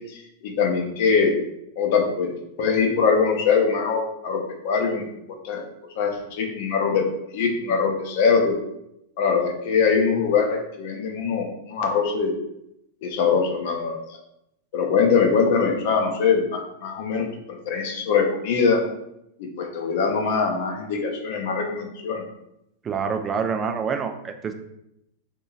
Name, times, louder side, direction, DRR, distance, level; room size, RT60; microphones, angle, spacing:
voice 1, 0.4-1.4 1.8-2.3 2.6-5.6 6.0-7.0 7.3-8.6 9.2-12.3 13.0-14.0 14.7-17.3 17.7-18.8 19.4-22.2, left 5 dB, 60° left, 3 dB, 0.7 m, -22 dB
voice 2, 22.8-24.5, right 6 dB, 25° right, 6 dB, 0.4 m, -26 dB
2.7 x 2.7 x 3.9 m, 0.82 s
hypercardioid pair, 100°, 0 cm